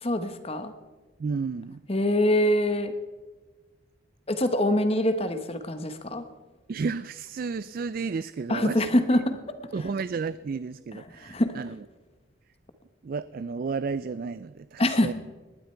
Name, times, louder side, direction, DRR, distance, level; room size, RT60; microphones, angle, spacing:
voice 1, 0.0-0.7 1.9-2.9 4.3-6.2 8.5-9.4 9.8-9.9 10.9-11.5 14.8-15.1, left 1 dB, 30° left, 9 dB, 1.1 m, -24 dB
voice 2, 1.2-1.8 6.7-8.8 9.7-11.8 13.0-15.1, right 4 dB, 45° right, 16 dB, 0.3 m, -32 dB
19.0 x 12.0 x 4.5 m, 1.3 s
head